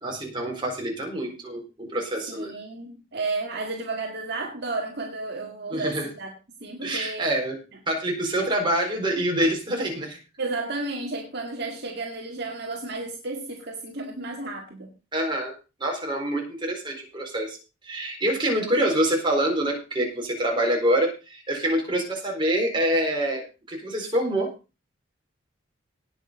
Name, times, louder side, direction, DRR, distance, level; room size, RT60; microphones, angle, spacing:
voice 1, 0.0-2.5 5.7-6.1 6.8-7.6 7.9-10.2 15.1-15.5 15.8-17.6 17.8-24.5, right 1 dB, 25° right, 0 dB, 4.3 m, -26 dB
voice 2, 2.3-6.3 6.6-7.3 8.4-8.5 10.4-14.9, right 3 dB, 50° right, 1 dB, 1.9 m, -32 dB
18.0 x 6.2 x 5.1 m, 0.31 s
head